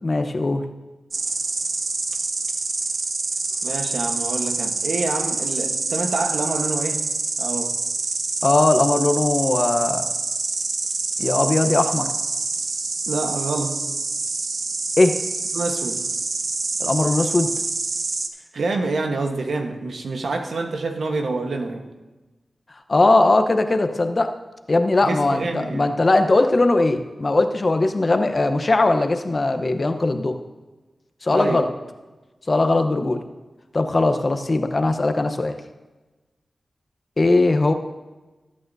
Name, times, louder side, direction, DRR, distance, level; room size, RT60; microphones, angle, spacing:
voice 1, 0.0-0.6 8.4-10.0 11.2-12.1 15.0-15.2 16.8-17.5 22.9-24.3 24.7-30.4 31.2-31.7 32.5-33.2 33.7-35.5 37.2-37.7, left 2 dB, 45° left, 7 dB, 0.9 m, -19 dB
Insect, 1.1-18.3, right 3 dB, 70° right, 0.8 m, -26 dB
voice 2, 3.6-7.0 7.4-7.7 13.1-13.7 15.5-16.0 18.5-21.9 25.0-25.9 31.3-31.6, right 3 dB, 85° right, 4 dB, 1.2 m, -27 dB
20.0 x 8.7 x 2.7 m, 1.2 s
cardioid pair, 60°, 0 cm